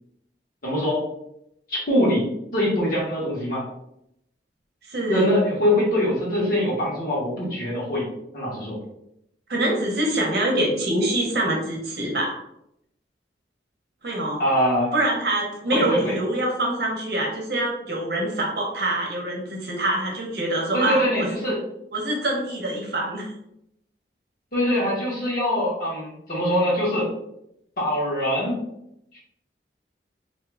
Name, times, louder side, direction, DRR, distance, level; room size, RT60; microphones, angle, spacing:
voice 1, 0.6-1.0 1.7-2.3 2.5-3.7 5.1-8.1 8.3-8.8 14.4-14.9 15.7-16.1 20.7-21.6 24.5-27.1 27.8-28.6 29.1-29.2, left 1 dB, 50° left, -5 dB, 1.2 m, -23 dB
voice 2, 4.9-5.3 9.5-12.4 14.0-14.4 14.9-21.3 21.9-23.2, right 1 dB, 60° right, -1 dB, 0.9 m, -25 dB
2.7 x 2.3 x 3.4 m, 0.78 s
head